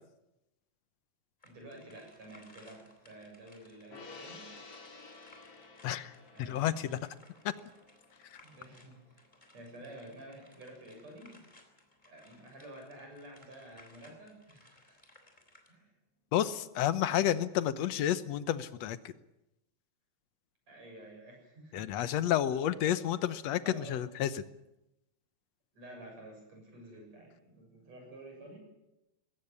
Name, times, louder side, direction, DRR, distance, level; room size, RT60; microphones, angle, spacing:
sound 1, 1.4-15.7, left 1 dB, 15° left, 3.5 m, -62 dB
voice 1, 1.4-4.5 6.3-6.9 8.4-9.3 9.5-11.5 12.1-15.0 15.7-15.9 20.7-22.2 22.6-23.0 23.6-24.0 25.7-28.6, right 1 dB, 60° right, 2 dB, 8.8 m, -51 dB
Gong, 3.9-10.5 10.9-11.0, left 3 dB, 50° left, 4.0 m, -54 dB
voice 2, 5.8-7.0 7.4-7.5 8.2-8.4 16.3-19.1 21.7-24.4, left 11 dB, 70° left, 14 dB, 2.0 m, -31 dB
20.5 x 17.0 x 9.7 m, 0.93 s
omnidirectional pair, 3.4 m